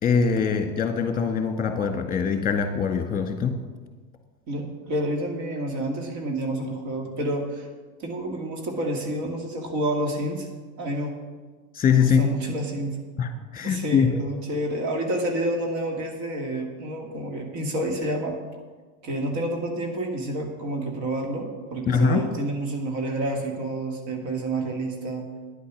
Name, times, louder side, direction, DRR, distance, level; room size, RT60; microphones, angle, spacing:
voice 1, 0.0-3.5 11.7-12.2 13.2-14.1 21.9-22.2, left 6 dB, 20° left, 5 dB, 1.7 m, -22 dB
voice 2, 4.5-7.7 8.0-10.5 10.8-11.1 12.0-13.0 13.6-18.4 19.0-25.3, right 1 dB, 55° right, 2 dB, 2.4 m, -29 dB
10.0 x 8.4 x 6.3 m, 1.4 s
hypercardioid pair, 105°, 42 cm